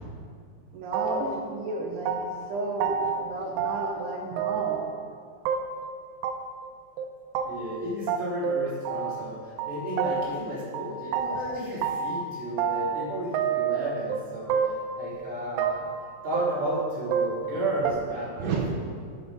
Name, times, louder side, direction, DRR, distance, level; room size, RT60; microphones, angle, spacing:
voice 1, 0.7-4.9 9.0-9.1 18.4-18.7, right 3 dB, 75° right, 0 dB, 2.6 m, -32 dB
sound 1, 0.9-1.4 1.7-2.5 2.8-3.2 3.6-4.1 4.4-4.9 5.5-5.9 6.2-6.3 6.6-6.7 7.0-7.1 7.3-7.5 7.7-7.8 8.1-9.3 9.6-10.5 10.7-12.2 12.6-13.1 13.3-14.2 14.5-15.0 15.2-16.0 16.3-17.6 17.8-17.9, right 7 dB, 90° right, 3.2 m, -28 dB
voice 2, 7.4-14.6 15.0-15.8 16.2-18.7, right 1 dB, 15° right, -8 dB, 3.2 m, -33 dB
12.0 x 9.5 x 5.3 m, 2.2 s
omnidirectional pair, 5.5 m